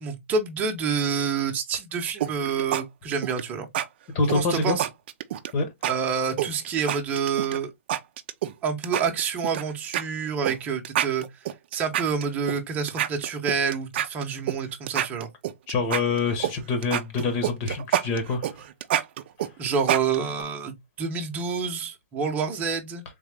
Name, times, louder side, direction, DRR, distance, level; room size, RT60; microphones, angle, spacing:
voice 1, 0.0-3.7 4.3-4.9 5.9-7.7 8.6-11.3 11.7-15.3 19.6-23.0, right 6 dB, 20° right, 0.9 m, -28 dB
sound 1, 2.2-2.8 3.1-3.4 3.7-3.9 4.3-5.5 5.8-5.9 6.4-7.6 7.9-8.5 8.8-9.6 9.9-10.0 10.4-10.6 10.8-12.6 12.9-14.6 14.9-16.5 16.8-20.4, right 11 dB, 50° right, 0.5 m, -27 dB
voice 2, 4.1-4.8 5.5-5.7 15.7-18.6, left 3 dB, 35° left, 1.4 m, -26 dB
3.7 x 2.9 x 3.4 m
hypercardioid pair, 145°, 7 cm